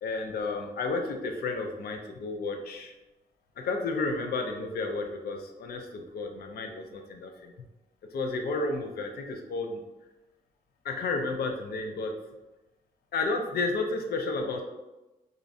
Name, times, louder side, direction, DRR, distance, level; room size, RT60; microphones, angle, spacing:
voice 1, 0.0-2.9 3.6-7.5 8.1-9.8 10.8-12.1 13.1-14.6, left 3 dB, 80° left, 4 dB, 0.4 m, -32 dB
2.4 x 2.0 x 2.6 m, 1.0 s
wide cardioid pair, 130°, 16 cm